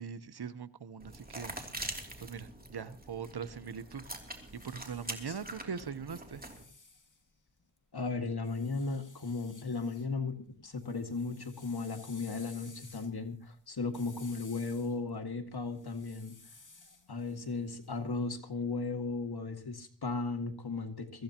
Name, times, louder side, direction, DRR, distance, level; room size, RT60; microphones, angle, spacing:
voice 1, 0.0-1.6 2.2-4.0 4.5-6.4, right 6 dB, 60° right, 14 dB, 0.9 m, -41 dB
sound 1, 1.0-6.6, right 1 dB, 20° right, 2.9 m, -44 dB
sound 2, 4.3-7.8 8.4-10.1 10.4-18.3, left 3 dB, 45° left, 2.1 m, -57 dB
voice 2, 7.9-16.4 17.1-21.2, left 4 dB, 60° left, 6 dB, 2.0 m, -36 dB
23.5 x 14.5 x 2.9 m, 0.43 s
cardioid pair, 40°, 44 cm